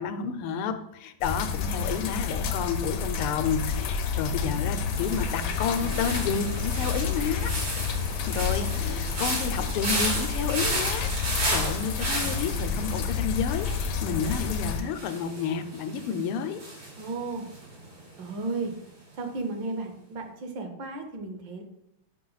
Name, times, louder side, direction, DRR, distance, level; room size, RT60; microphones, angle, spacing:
voice 1, 0.0-7.5 8.3-16.6, left 7 dB, 85° left, 8 dB, 1.5 m, -30 dB
sound 1, 1.2-14.8, left 6 dB, 70° left, 1.1 m, -30 dB
sound 2, 4.9-18.0 18.2-18.7, right 1 dB, 90° right, 3.6 m, -34 dB
voice 2, 17.0-17.5 18.2-18.7 19.2-21.6, right 3 dB, 65° right, 5 dB, 1.4 m, -34 dB
5.8 x 5.5 x 3.9 m, 0.79 s
omnidirectional pair, 2.4 m